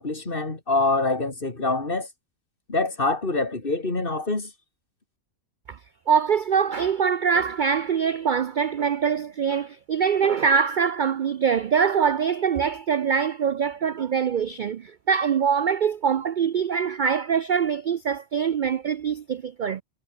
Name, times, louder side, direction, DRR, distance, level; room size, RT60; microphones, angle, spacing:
voice 1, 0.0-2.1 2.7-4.5, left 3 dB, 35° left, 3.4 m, -25 dB
voice 2, 6.1-19.8, right 6 dB, 85° right, 0.4 m, -23 dB
omnidirectional pair, 1.5 m